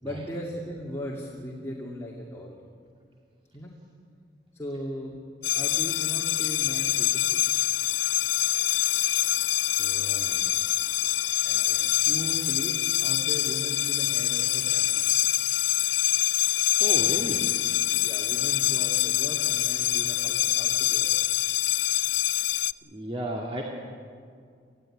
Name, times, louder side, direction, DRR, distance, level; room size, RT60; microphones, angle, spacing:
voice 1, 0.0-2.6 3.5-3.7 4.5-5.2 5.5-7.4 11.4-15.0 18.0-21.3, equal, 15° left, -3 dB, 2.4 m, -38 dB
sound 1, 5.4-22.7, left 16 dB, 75° left, 0.5 m, -25 dB
voice 2, 9.8-10.5 11.7-11.9 16.8-17.5 22.8-23.6, right 1 dB, 30° right, -1 dB, 2.1 m, -34 dB
26.5 x 15.5 x 10.0 m, 2.2 s
head